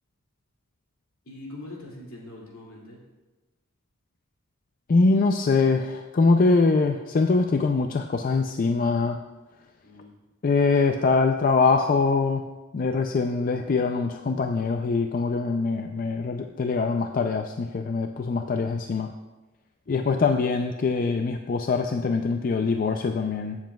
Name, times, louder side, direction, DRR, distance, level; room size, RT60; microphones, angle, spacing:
voice 1, 1.2-3.0 9.8-10.1 19.8-20.2, left 2 dB, 75° left, -3 dB, 2.5 m, -43 dB
voice 2, 4.9-9.2 10.4-12.4 12.7-19.1 19.9-23.6, left 4 dB, 40° left, 5 dB, 0.4 m, -23 dB
15.0 x 7.2 x 2.3 m, 1.1 s
head